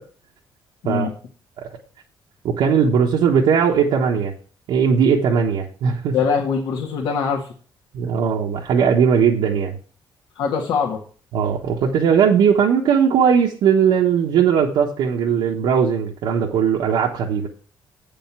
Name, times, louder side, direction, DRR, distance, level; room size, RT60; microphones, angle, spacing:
voice 1, 0.8-1.1 6.1-7.5 10.4-11.0, left 6 dB, 75° left, -2 dB, 1.8 m, -22 dB
voice 2, 2.4-4.3 4.7-6.2 7.9-9.8 11.3-17.5, right 7 dB, 80° right, -2 dB, 1.3 m, -18 dB
8.6 x 5.3 x 7.4 m, 0.41 s
cardioid pair, 155°, 8 cm